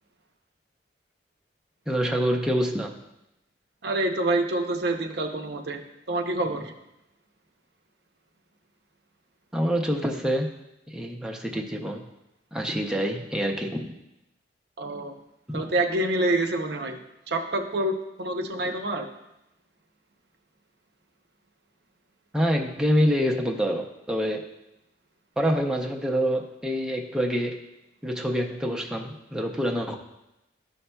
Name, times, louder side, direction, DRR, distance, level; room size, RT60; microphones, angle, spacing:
voice 1, 1.9-2.9 9.5-10.5 10.9-12.0 12.5-13.9 15.5-15.7 22.3-24.4 25.4-27.6 28.0-29.9, equal, 5° right, 0 dB, 0.5 m, -26 dB
voice 2, 3.8-5.8 6.1-6.7 14.8-15.1 15.5-17.0 17.3-19.1, right 2 dB, 60° right, 6 dB, 0.6 m, -27 dB
12.5 x 5.5 x 2.2 m, 0.89 s
head